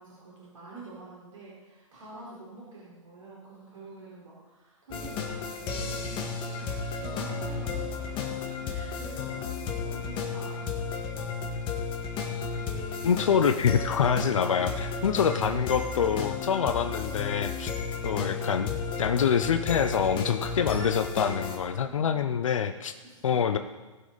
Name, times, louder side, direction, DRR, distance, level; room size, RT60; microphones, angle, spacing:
voice 1, 0.0-6.1 6.5-8.4 8.6-11.3 14.6-14.8 21.6-22.3 23.0-23.2, right 2 dB, 70° right, -7 dB, 4.4 m, -47 dB
sound 1, 4.9-21.6, left 5 dB, 30° left, 1.9 m, -33 dB
voice 2, 13.0-17.7 18.0-22.9 23.2-23.6, left 7 dB, 70° left, 9 dB, 0.8 m, -26 dB
19.5 x 7.5 x 4.1 m, 1.2 s
hypercardioid pair, 120°, 17 cm